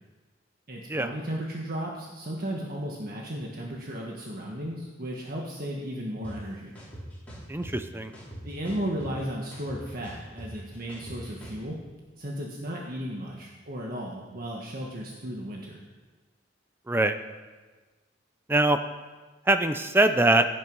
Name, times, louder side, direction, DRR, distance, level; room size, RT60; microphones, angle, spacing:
voice 1, 0.7-6.7 8.4-11.8 12.2-15.8, equal, 50° right, -2 dB, 1.6 m, -35 dB
sound 1, 6.2-6.3 6.7-7.7 8.1-9.2 9.5-11.6, right 1 dB, 10° left, 4.6 m, -42 dB
voice 2, 7.5-8.1 16.9-17.2 18.5-18.8 19.5-20.5, right 2 dB, 10° right, 8 dB, 0.5 m, -22 dB
16.0 x 9.4 x 5.5 m, 1.3 s
head